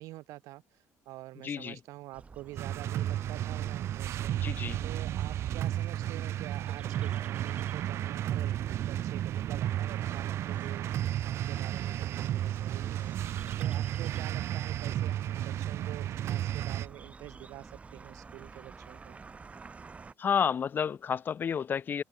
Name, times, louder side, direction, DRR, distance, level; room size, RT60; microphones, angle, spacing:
voice 1, 0.0-4.3 4.8-8.5 8.8-13.2 13.6-19.2, right 18 dB, 85° right, 1.9 m, -47 dB
voice 2, 1.4-1.8 4.4-4.8 20.2-22.0, left 7 dB, 40° left, 1.0 m, -30 dB
sound 1, 2.1-20.1, right 4 dB, 25° right, 5.4 m, -51 dB
sound 2, 2.6-16.9, right 12 dB, 55° right, 0.4 m, -33 dB
open air
cardioid pair, 125°, 5 cm